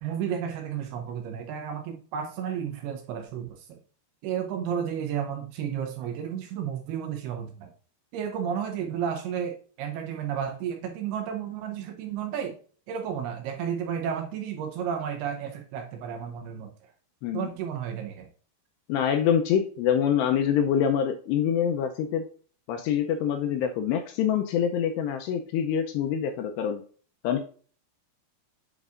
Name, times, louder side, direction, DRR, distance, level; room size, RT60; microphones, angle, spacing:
voice 1, 0.0-3.8 4.2-7.7 8.1-12.6 12.9-16.7 17.3-18.3, right 8 dB, 75° right, 5 dB, 2.4 m, -32 dB
voice 2, 18.9-22.2 22.7-26.8 27.2-27.4, left 8 dB, 80° left, 5 dB, 2.6 m, -25 dB
8.0 x 5.3 x 2.4 m, 0.42 s
omnidirectional pair, 5.1 m